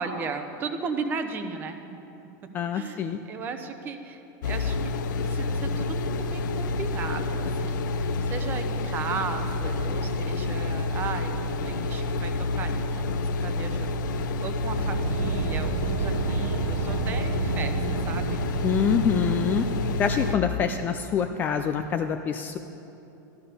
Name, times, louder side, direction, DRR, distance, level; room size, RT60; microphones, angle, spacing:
voice 1, 0.0-2.0 2.4-4.9 5.2-17.8 18.1-18.7 20.3-20.4, right 5 dB, 20° right, 7 dB, 0.8 m, -36 dB
voice 2, 2.5-3.2 18.6-19.7 20.0-22.6, left 7 dB, 20° left, 7 dB, 0.4 m, -25 dB
sound 1, 4.4-20.4, left 2 dB, 85° left, 0.9 m, -28 dB
sound 2, 14.7-20.0, right 10 dB, 75° right, 0.7 m, -32 dB
14.0 x 12.5 x 6.7 m, 2.9 s
supercardioid pair, 175°, 10 cm